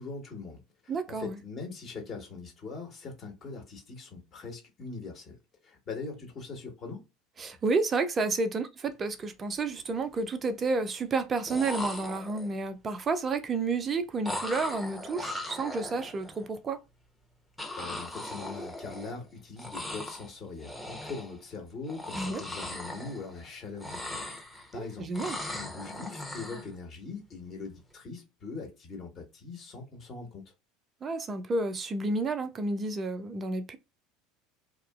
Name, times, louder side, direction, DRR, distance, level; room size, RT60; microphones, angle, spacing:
voice 1, 0.0-5.4 5.6-7.1 17.8-24.3 24.5-25.1 25.5-30.5, left 4 dB, 35° left, 1.3 m, -42 dB
voice 2, 0.9-1.4 7.4-16.8 22.1-22.4 24.7-25.4 31.0-33.8, right 3 dB, 30° right, 0.5 m, -30 dB
sound 1, 9.0-9.2 9.6-10.2 11.2-11.3 11.5-12.7 14.2-16.4 17.6-19.3 19.6-20.3 20.6-21.4 21.8-23.5 23.7-24.8 25.1-26.7, left 1 dB, ahead, 0.8 m, -39 dB
2.8 x 2.4 x 2.4 m
figure-of-eight pair, 70°, 0 cm